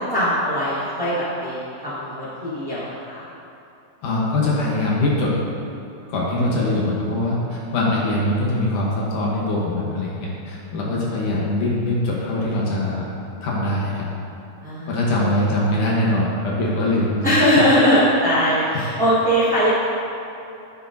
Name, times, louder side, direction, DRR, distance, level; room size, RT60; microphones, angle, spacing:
voice 1, 0.0-3.2 6.4-6.5 14.6-15.3 17.2-19.7, equal, 40° right, -12 dB, 1.3 m, -21 dB
voice 2, 4.0-5.3 6.1-13.1 13.4-14.1 14.9-17.4, left 1 dB, 65° left, -5 dB, 2.4 m, -22 dB
10.5 x 9.2 x 2.7 m, 2.9 s
omnidirectional pair, 4.3 m